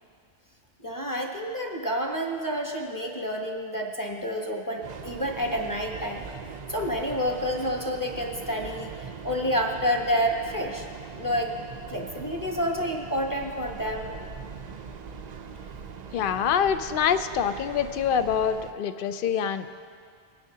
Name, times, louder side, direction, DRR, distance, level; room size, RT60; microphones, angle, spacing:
voice 1, 0.8-6.3 6.7-10.9 11.1-11.5 11.9-14.1, equal, 20° left, 1 dB, 1.0 m, -29 dB
Train, 4.8-18.7, right 6 dB, 50° right, 0.5 m, -41 dB
voice 2, 16.1-19.7, left 7 dB, 60° left, 10 dB, 0.6 m, -25 dB
19.5 x 10.0 x 2.8 m, 2.2 s
omnidirectional pair, 1.2 m